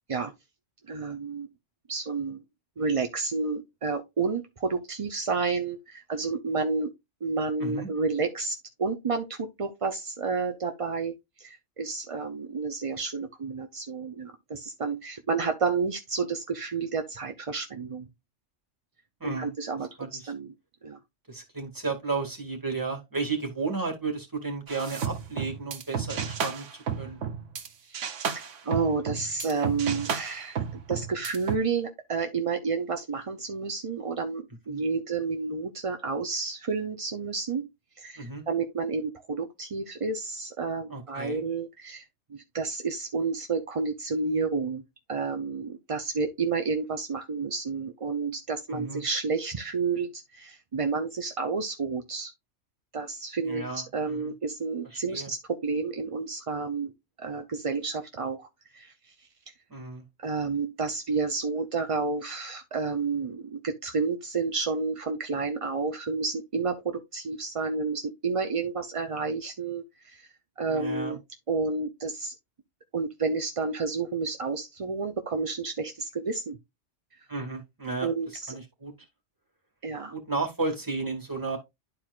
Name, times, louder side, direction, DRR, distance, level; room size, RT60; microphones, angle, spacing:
voice 1, 0.9-1.5 1.9-2.4 2.8-6.9 7.2-18.1 19.2-20.5 20.8-21.0 27.8-37.7 38.0-42.0 42.3-44.8 45.1-52.3 52.9-56.9 57.2-59.1 60.2-70.3 70.6-71.2 71.5-72.3 72.9-76.6 78.0-78.5 79.8-80.1, right 4 dB, 40° right, 0.5 m, -30 dB
voice 2, 19.2-19.5 20.0-20.3 21.3-26.7 27.0-27.2 34.7-34.8 38.2-38.4 40.9-41.4 48.7-49.0 53.4-54.3 54.9-55.3 59.7-60.0 70.7-71.2 77.3-78.1 78.5-78.9 80.1-81.6, right 3 dB, 15° right, 2.2 m, -33 dB
sound 1, 24.7-27.7 27.9-31.6, right 7 dB, 75° right, 1.2 m, -32 dB
11.5 x 4.5 x 2.4 m
omnidirectional pair, 1.3 m